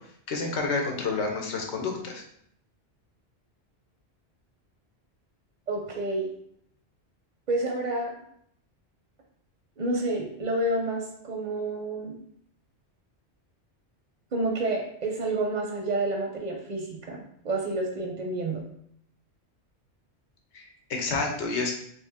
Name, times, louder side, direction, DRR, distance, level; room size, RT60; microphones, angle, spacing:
voice 1, 0.3-2.2 20.5-21.7, left 3 dB, 80° left, 2 dB, 1.0 m, -29 dB
voice 2, 5.7-6.3 7.5-8.1 9.8-12.2 14.3-18.6, right 2 dB, 50° right, 1 dB, 0.5 m, -29 dB
3.1 x 2.6 x 3.4 m, 0.69 s
omnidirectional pair, 1.1 m